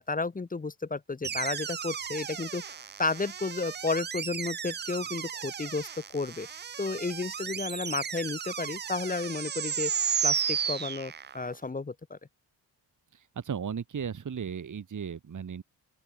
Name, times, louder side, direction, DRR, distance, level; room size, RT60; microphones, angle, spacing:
voice 1, 0.0-6.5 6.8-9.9 10.2-12.2, left 3 dB, 20° left, 0.7 m, -32 dB
sound 1, 1.2-11.5, right 7 dB, 25° right, 0.3 m, -34 dB
voice 2, 13.1-15.6, right 7 dB, 40° right, 1.1 m, -36 dB
open air
cardioid pair, 55°, 46 cm